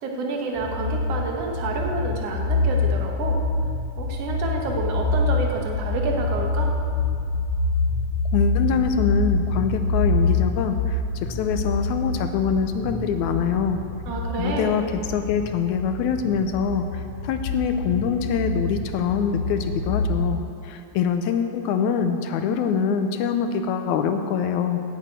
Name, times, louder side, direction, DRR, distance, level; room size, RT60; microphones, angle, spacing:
voice 1, 0.0-3.4 4.0-6.7 14.1-14.8, right 3 dB, 60° right, 1 dB, 2.1 m, -29 dB
sound 1, 0.5-20.3, left 3 dB, 10° left, 2.7 m, -26 dB
voice 2, 8.3-13.8 14.4-24.8, left 7 dB, 75° left, 7 dB, 2.0 m, -24 dB
9.0 x 8.1 x 8.8 m, 2.5 s
omnidirectional pair, 3.6 m